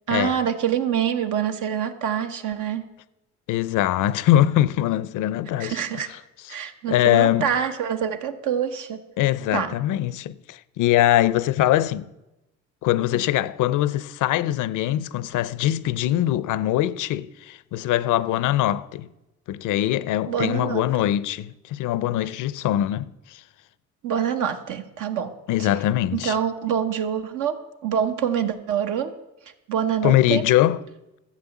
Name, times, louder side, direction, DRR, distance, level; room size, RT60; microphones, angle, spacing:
voice 1, 0.1-2.8 5.6-6.1 6.5-9.0 9.5-9.7 20.3-20.8 24.0-25.3 26.1-29.1 29.7-30.4, right 8 dB, 85° right, 1.2 m, -25 dB
voice 2, 3.5-5.8 6.9-7.5 9.2-12.1 12.8-19.1 19.5-23.4 25.5-26.4 30.0-30.8, left 13 dB, 85° left, 0.6 m, -22 dB
13.0 x 7.7 x 7.1 m
cardioid pair, 90°, 30 cm